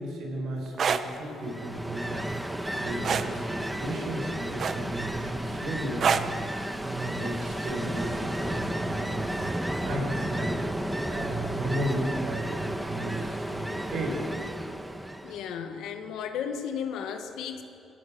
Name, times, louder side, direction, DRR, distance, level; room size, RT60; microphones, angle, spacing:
voice 1, 0.0-14.2, right 1 dB, 80° right, 0 dB, 5.4 m, -35 dB
sound 1, 0.7-1.0 3.0-3.3 4.6-5.0 6.0-6.3 7.8-7.9, right 6 dB, 55° right, 1.0 m, -25 dB
Ocean, 1.4-15.5, right 1 dB, 5° right, 1.3 m, -33 dB
voice 2, 15.2-17.6, left 7 dB, 85° left, 6 dB, 1.5 m, -34 dB
19.5 x 17.5 x 7.9 m, 2.7 s
cardioid pair, 90°, 0 cm